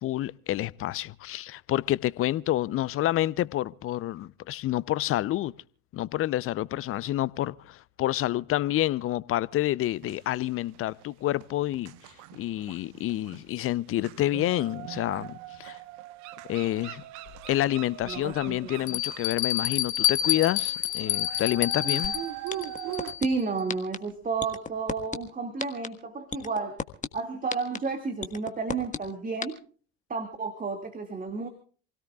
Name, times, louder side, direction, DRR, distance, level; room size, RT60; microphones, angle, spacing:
voice 1, 0.0-5.5 5.9-11.9 12.3-15.8 16.5-17.0 17.5-22.2, left 14 dB, 40° left, 0.7 m, -28 dB
sound 1, 10.0-11.0 11.4-23.1, right 13 dB, 60° right, 1.2 m, -41 dB
Bell, 17.3-17.4 18.0-18.1 18.9-23.4, left 11 dB, 60° left, 1.8 m, -28 dB
voice 2, 18.1-19.0 23.2-26.8 27.1-29.6 30.1-31.5, right 4 dB, 25° right, 2.3 m, -32 dB
sound 2, 22.0-22.1 22.5-23.2 23.7-24.0 24.4-25.2 25.6-25.9 26.3-27.1 27.5-27.8 28.2-29.0 29.4-29.5, left 5 dB, 25° left, 1.5 m, -31 dB
28.0 x 17.5 x 2.4 m
hypercardioid pair, 70°, 33 cm